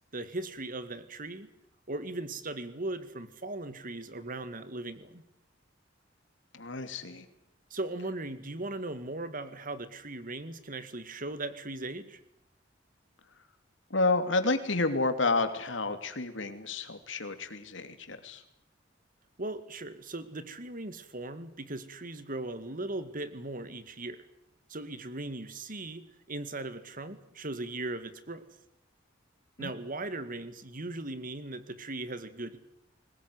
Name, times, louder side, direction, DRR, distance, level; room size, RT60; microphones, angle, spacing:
voice 1, 0.1-1.5 1.9-5.2 7.7-12.2 19.4-24.2 24.7-28.5 29.6-32.6, right 2 dB, 50° right, 12 dB, 2.1 m, -38 dB
voice 2, 6.5-7.3 13.9-18.4 29.6-29.7, left 3 dB, 75° left, 8 dB, 2.8 m, -30 dB
21.5 x 20.0 x 9.6 m, 0.78 s
head